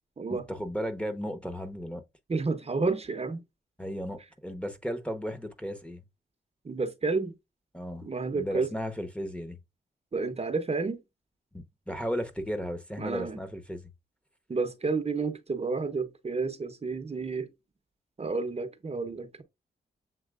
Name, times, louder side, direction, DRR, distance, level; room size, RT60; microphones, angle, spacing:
voice 1, 0.3-2.0 3.8-6.0 7.7-9.6 11.5-13.8, equal, 5° left, 0.9 m, -35 dB
voice 2, 2.3-3.4 6.6-7.3 8.0-8.7 10.1-11.0 13.0-13.4 14.5-17.5 18.2-19.4, right 4 dB, 35° right, 0.8 m, -30 dB
7.4 x 2.9 x 2.4 m
cardioid pair, 50°, 18 cm